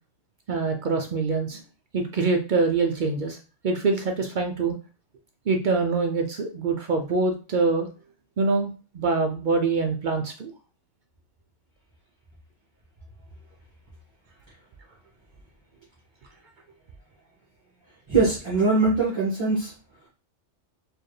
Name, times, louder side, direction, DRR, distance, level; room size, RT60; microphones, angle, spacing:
voice 1, 0.5-1.6 1.9-3.4 3.6-4.7 5.5-7.9 8.4-10.5, right 4 dB, 60° right, 4 dB, 0.5 m, -24 dB
voice 2, 18.1-19.7, right 3 dB, 25° right, -8 dB, 1.3 m, -22 dB
4.4 x 2.5 x 3.1 m, 0.35 s
omnidirectional pair, 1.2 m